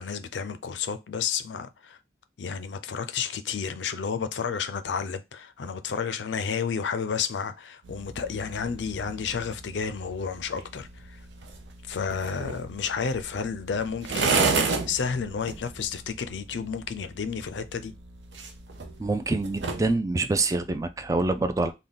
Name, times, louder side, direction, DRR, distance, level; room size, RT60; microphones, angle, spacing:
voice 1, 0.0-2.0 2.4-11.2 11.8-14.5 14.9-17.9, left 6 dB, 75° left, 0.4 m, -31 dB
sound 1, 7.8-19.9, right 4 dB, 80° right, 0.7 m, -33 dB
voice 2, 19.0-21.7, right 2 dB, 20° right, 0.3 m, -26 dB
3.5 x 2.2 x 3.9 m
head